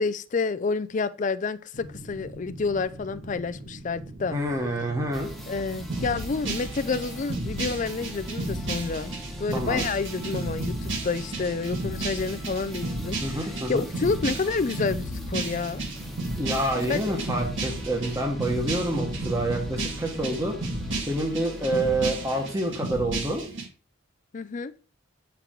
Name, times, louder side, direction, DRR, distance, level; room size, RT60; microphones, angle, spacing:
voice 1, 0.0-4.4 5.5-9.1 9.4-15.8 16.7-17.0 24.3-24.7, left 4 dB, 35° left, 0.4 m, -29 dB
sound 1, 1.7-20.6, right 1 dB, 90° right, 1.8 m, -42 dB
voice 2, 4.3-5.3 9.5-9.8 13.2-13.9 16.3-20.5 21.1-23.4, right 1 dB, 15° right, 1.2 m, -27 dB
sound 2, 5.1-22.5, equal, ahead, 1.1 m, -42 dB
sound 3, 5.9-23.6, right 2 dB, 60° right, 2.1 m, -33 dB
8.0 x 4.6 x 3.8 m
head